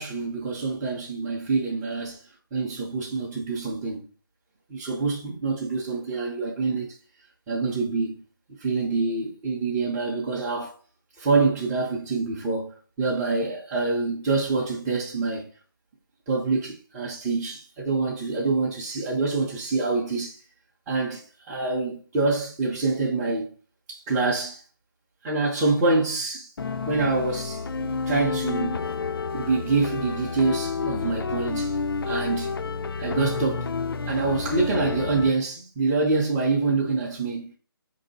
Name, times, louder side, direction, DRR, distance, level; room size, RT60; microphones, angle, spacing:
voice 1, 0.0-2.2 2.5-4.0 4.7-7.0 7.5-8.2 8.6-10.8 11.2-15.5 16.3-20.4 20.9-23.5 23.9-24.6 25.2-26.5 26.9-28.8 29.3-31.8 32.0-32.6 33.0-33.7 34.1-37.5, right 3 dB, 10° right, 0.5 m, -26 dB
sound 1, 26.6-35.3, left 4 dB, 70° left, 0.4 m, -30 dB
4.6 x 2.7 x 4.0 m
hypercardioid pair, 165°, 12 cm